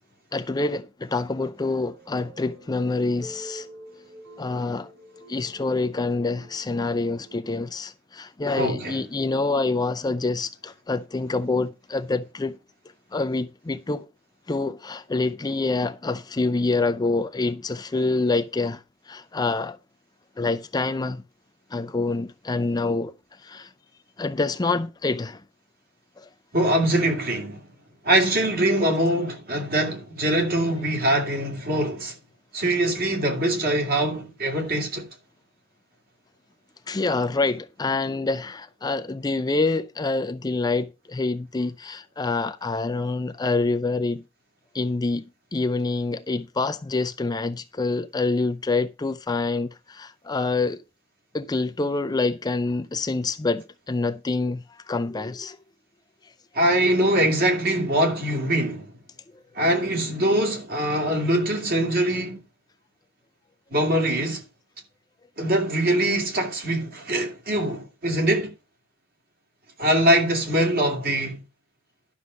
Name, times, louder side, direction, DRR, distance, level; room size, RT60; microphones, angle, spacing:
voice 1, 0.3-3.7 4.4-4.9 5.3-12.6 13.1-14.0 14.5-19.8 20.4-21.2 21.7-23.1 23.4-23.7 24.2-25.4 26.2-26.3 36.9-44.2 44.7-45.2 45.5-50.8 51.3-55.6, left 3 dB, 20° left, 0.4 m, -26 dB
sound 1, 1.5-7.7, right 1 dB, 75° right, 5.7 m, -47 dB
voice 2, 8.5-9.0 26.5-27.6 28.0-32.1 32.5-35.1 56.5-58.9 59.5-62.4 63.7-64.4 65.4-68.5 69.8-71.4, right 1 dB, 45° right, 2.7 m, -23 dB
11.5 x 6.1 x 5.1 m
head